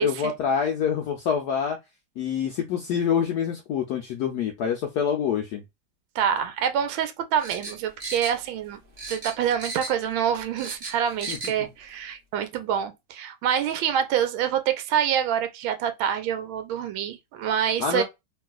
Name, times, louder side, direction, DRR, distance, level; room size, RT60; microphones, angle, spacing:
voice 1, 0.0-1.8 2.2-5.6 11.3-11.7 17.8-18.0, left 7 dB, 80° left, 0.9 m, -26 dB
voice 2, 6.1-8.8 9.1-18.0, right 9 dB, 80° right, 1.4 m, -26 dB
sound 1, 7.4-8.7 9.0-10.1 10.4-11.6 11.9-12.0, right 2 dB, 55° right, 0.5 m, -36 dB
3.2 x 2.9 x 2.2 m
omnidirectional pair, 2.3 m